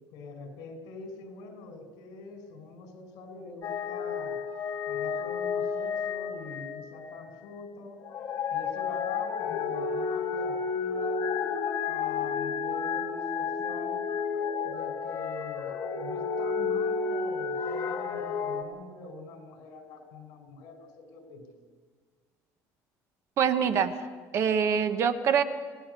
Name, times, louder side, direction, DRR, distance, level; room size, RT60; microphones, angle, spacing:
voice 1, 0.1-4.4 4.9-8.0 8.5-11.2 11.9-14.0 14.6-21.5, left 3 dB, 70° left, 5 dB, 5.3 m, -44 dB
sound 1, 3.6-7.4 8.0-18.6, left 6 dB, 40° left, 2.4 m, -31 dB
voice 2, 23.4-24.0 24.3-25.4, right 7 dB, 40° right, 10 dB, 1.3 m, -24 dB
27.5 x 18.5 x 6.9 m, 1.5 s
cardioid pair, 165°, 7 cm